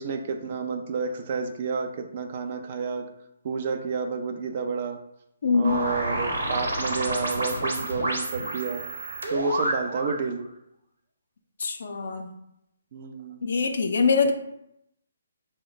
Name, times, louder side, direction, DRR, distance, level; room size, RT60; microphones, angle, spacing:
voice 1, 0.0-3.1 3.4-5.0 5.5-8.8 9.3-10.5 12.9-13.5, right 5 dB, 45° right, 6 dB, 0.4 m, -30 dB
voice 2, 5.4-5.8 11.6-12.3 13.4-14.3, left 5 dB, 65° left, 5 dB, 0.5 m, -23 dB
sound 1, 5.6-10.2, right 1 dB, 85° right, 0.9 m, -29 dB
3.9 x 2.1 x 3.9 m, 0.80 s
hypercardioid pair, 155°, 0 cm